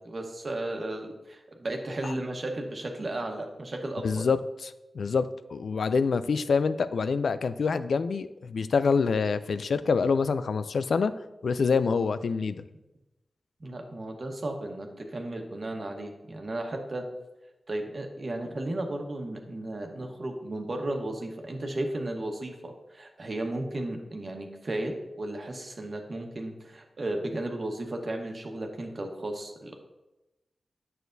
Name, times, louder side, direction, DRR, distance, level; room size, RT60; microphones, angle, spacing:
voice 1, 0.0-4.2 13.6-17.0 17.7-29.7, right 1 dB, 50° right, 3 dB, 1.2 m, -34 dB
voice 2, 4.0-11.1 11.4-12.6, left 5 dB, 80° left, 13 dB, 0.3 m, -26 dB
9.0 x 6.4 x 2.7 m, 1.0 s
cardioid pair, 55°, 0 cm